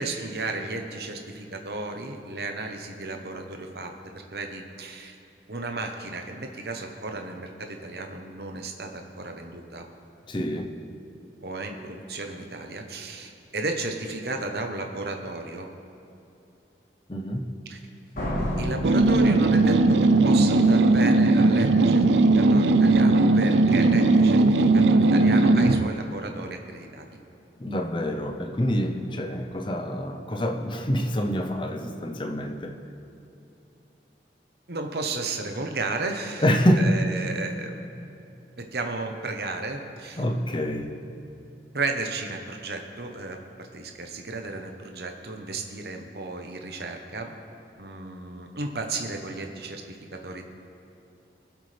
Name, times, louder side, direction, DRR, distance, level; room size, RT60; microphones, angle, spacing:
voice 1, 0.0-5.2 5.5-9.9 11.4-15.7 17.7-17.8 18.6-27.0 34.7-36.4 36.8-37.8 38.6-40.2 41.7-47.3 47.8-50.4, right 3 dB, 60° right, 4 dB, 1.0 m, -34 dB
voice 2, 10.3-10.7 17.1-17.4 27.6-32.7 36.4-37.0 40.2-40.9, equal, 25° left, 4 dB, 0.7 m, -26 dB
Slam, 18.2-20.1, equal, 50° left, 3.2 m, -30 dB
sound 1, 18.8-25.9, right 2 dB, 80° right, 0.5 m, -18 dB
22.0 x 7.9 x 3.4 m, 2.7 s
head